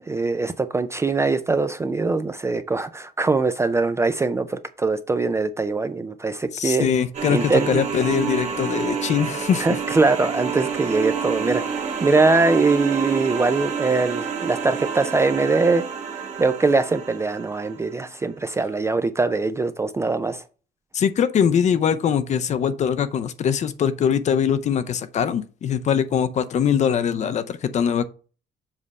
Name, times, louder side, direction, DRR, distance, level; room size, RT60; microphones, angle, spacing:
voice 1, 0.1-6.9 7.3-7.8 9.6-15.8 16.4-20.4, right 3 dB, 15° right, 0.3 m, -22 dB
voice 2, 6.5-9.7 20.9-28.1, left 8 dB, 40° left, 0.5 m, -22 dB
sound 1, 7.1-17.9, right 6 dB, 40° right, 1.4 m, -29 dB
7.4 x 3.3 x 5.2 m
cardioid pair, 175°, 18 cm